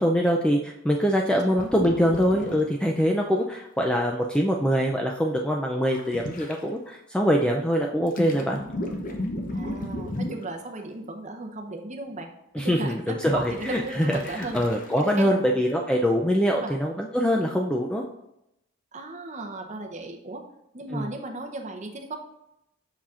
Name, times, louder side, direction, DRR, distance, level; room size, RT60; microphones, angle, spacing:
voice 1, 0.0-8.6 12.5-13.0 13.2-18.0 20.9-21.1, equal, 5° left, 0 dB, 0.3 m, -24 dB
sound 1, 1.6-2.6 2.9-3.0 5.9-6.6 8.1-10.6 12.9-15.3 15.7-15.8, left 1 dB, 40° left, 0.8 m, -34 dB
voice 2, 9.5-12.3 12.6-14.8 15.0-15.4 16.4-16.8 18.9-20.4 20.7-22.2, right 2 dB, 35° right, 4 dB, 0.7 m, -36 dB
7.0 x 5.7 x 2.5 m, 0.84 s
head